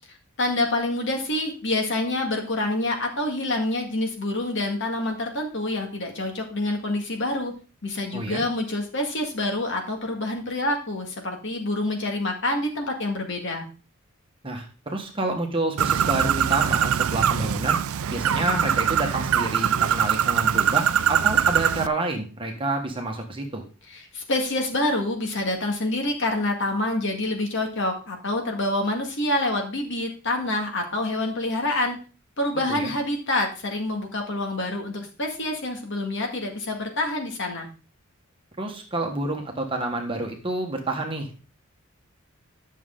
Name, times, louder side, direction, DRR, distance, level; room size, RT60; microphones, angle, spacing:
voice 1, 0.4-7.5 7.8-13.7 23.9-32.0 32.4-37.7, left 1 dB, 55° left, 3 dB, 1.8 m, -27 dB
voice 2, 8.1-8.4 14.4-17.8 18.1-23.6 32.7-32.9 38.6-41.4, right 2 dB, 25° right, 2 dB, 1.3 m, -28 dB
Bird, 15.8-21.9, right 8 dB, 75° right, 0.4 m, -22 dB
10.5 x 6.5 x 3.7 m, 0.35 s
head